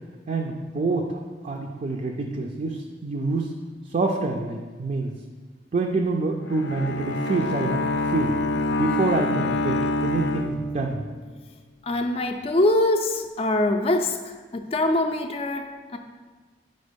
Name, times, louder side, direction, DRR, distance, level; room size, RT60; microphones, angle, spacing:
voice 1, 0.3-3.5 3.9-5.1 5.7-8.4 8.7-11.0, right 3 dB, 40° right, 1 dB, 0.4 m, -27 dB
Bowed string instrument, 6.5-11.2, left 2 dB, 85° left, 0.5 m, -26 dB
voice 2, 11.8-16.0, left 1 dB, 35° left, 5 dB, 0.4 m, -24 dB
5.3 x 4.3 x 5.1 m, 1.4 s
head